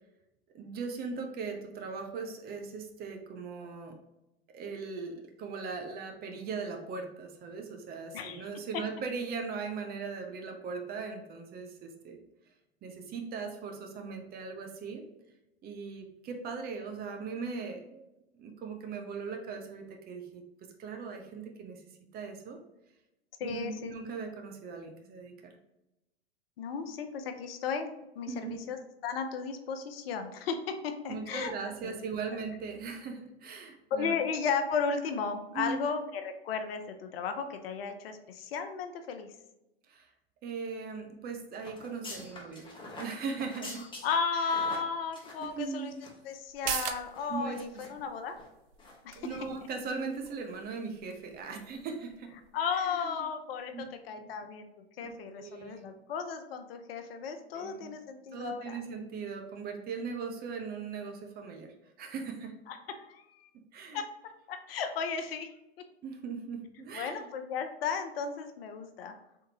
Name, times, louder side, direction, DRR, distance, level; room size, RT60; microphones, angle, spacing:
voice 1, 0.5-4.0 4.5-12.2 12.8-15.0 15.6-18.0 18.4-21.8 22.1-22.6 23.4-25.6 28.3-28.6 31.1-34.2 35.5-35.8 39.9-40.1 40.4-42.7 43.0-43.9 44.5-44.6 45.4-46.0 47.3-47.6 49.1-52.4 52.7-53.1 53.7-53.9 54.2-54.4 55.0-55.1 55.4-55.9 57.5-58.0 58.3-62.6 63.7-64.0 66.0-67.3, right 5 dB, 30° right, 4 dB, 0.7 m, -39 dB
voice 2, 8.1-8.5 23.4-23.9 26.6-27.9 28.2-28.8 29.0-31.5 31.8-31.9 33.9-39.3 44.0-45.9 46.2-48.4 49.0-49.4 52.5-54.7 55.0-58.8 62.7-63.5 63.9-64.1 64.5-65.5 66.9-69.1, left 6 dB, 65° left, 7 dB, 0.7 m, -34 dB
sound 1, 41.6-46.3 46.6-46.7 47.1-47.9 48.3-48.5 48.8-49.0 49.3-49.4, left 2 dB, 15° left, 1.2 m, -46 dB
sound 2, 46.5-53.6 53.9-54.0, right 10 dB, 60° right, 0.5 m, -43 dB
3.7 x 3.5 x 2.8 m, 0.94 s
hypercardioid pair, 100°, 32 cm